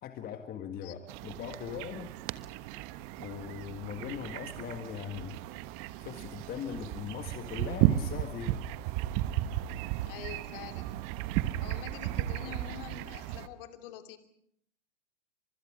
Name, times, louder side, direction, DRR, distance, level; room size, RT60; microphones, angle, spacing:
voice 1, 0.0-2.1 3.2-5.4 6.0-8.6, left 8 dB, 25° left, 7 dB, 1.8 m, -40 dB
voice 2, 0.8-1.1 10.0-11.0 11.6-14.2, left 11 dB, 50° left, 7 dB, 2.9 m, -46 dB
sound 1, 1.1-13.5, right 14 dB, 40° right, 1.2 m, -34 dB
29.5 x 25.5 x 5.1 m, 0.69 s
hypercardioid pair, 110°, 35 cm